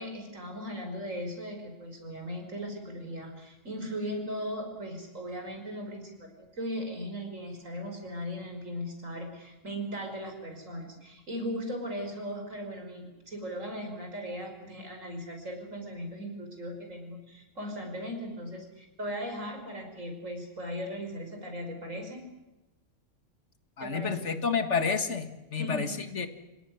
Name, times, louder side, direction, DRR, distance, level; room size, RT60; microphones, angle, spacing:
voice 1, 0.0-22.3 23.8-24.3 25.5-25.9, equal, 85° right, 4 dB, 5.8 m, -38 dB
voice 2, 23.8-26.3, left 5 dB, 65° left, 9 dB, 2.1 m, -30 dB
27.0 x 17.5 x 9.8 m, 1.1 s
omnidirectional pair, 1.3 m